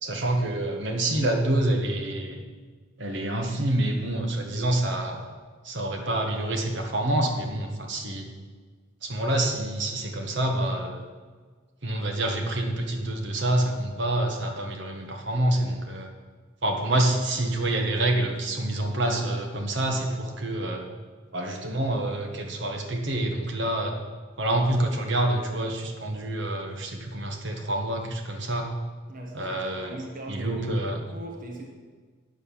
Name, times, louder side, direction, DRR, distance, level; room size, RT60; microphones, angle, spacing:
voice 1, 0.0-2.4 3.0-5.3 5.6-8.3 9.0-11.1 11.8-16.1 16.6-20.8 21.3-23.9 24.4-28.7 29.3-30.0 30.3-31.0, right 1 dB, 60° right, 2 dB, 1.4 m, -27 dB
voice 2, 29.1-30.8 31.1-31.7, right 1 dB, 40° right, 0 dB, 1.3 m, -39 dB
9.8 x 6.8 x 7.0 m, 1.5 s
head